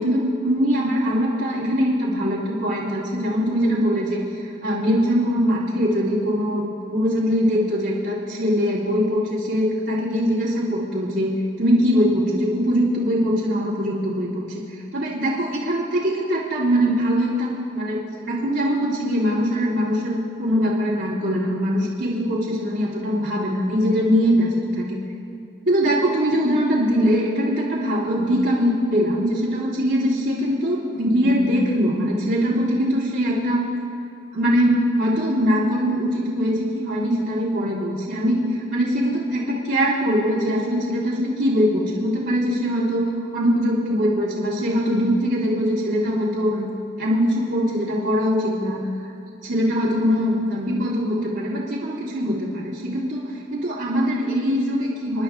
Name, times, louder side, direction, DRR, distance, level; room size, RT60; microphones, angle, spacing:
voice 1, 0.0-14.4 14.9-25.0 25.7-33.7 34.3-48.9 49.4-53.2 53.5-55.2, equal, 85° right, -11 dB, 2.5 m, -22 dB
27.5 x 11.0 x 2.5 m, 2.5 s
head